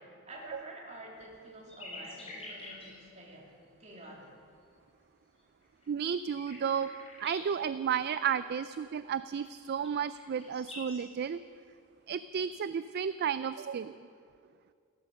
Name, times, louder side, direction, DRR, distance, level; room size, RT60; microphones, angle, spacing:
voice 1, 0.0-3.5 3.8-4.3, right 1 dB, 30° right, -2 dB, 3.3 m, -48 dB
sound 1, 1.2-3.2 3.7-3.8 4.2-4.3 4.6-4.8 5.4-7.5 9.4-11.0 12.1-12.4, left 2 dB, 30° left, 4.4 m, -47 dB
voice 2, 5.9-6.9 7.2-11.4 12.1-14.0, right 7 dB, 50° right, 14 dB, 0.3 m, -32 dB
16.5 x 13.5 x 6.6 m, 2.3 s
head